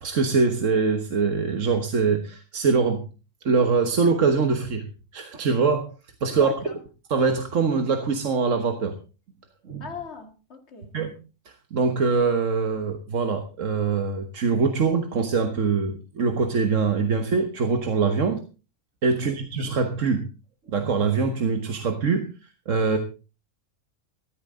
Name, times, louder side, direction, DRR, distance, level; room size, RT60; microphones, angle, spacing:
voice 1, 0.0-3.0 3.5-4.8 5.1-5.9 6.2-6.5 7.1-8.9 9.7-9.9 10.9-11.1 11.5-18.4 19.0-20.2 20.7-22.3 22.7-23.0, right 5 dB, 75° right, 6 dB, 1.6 m, -23 dB
voice 2, 6.3-6.8 9.8-10.9 19.1-19.4 22.9-23.0, left 6 dB, 55° left, 6 dB, 2.2 m, -39 dB
14.5 x 13.5 x 3.8 m, 0.33 s
omnidirectional pair, 1.3 m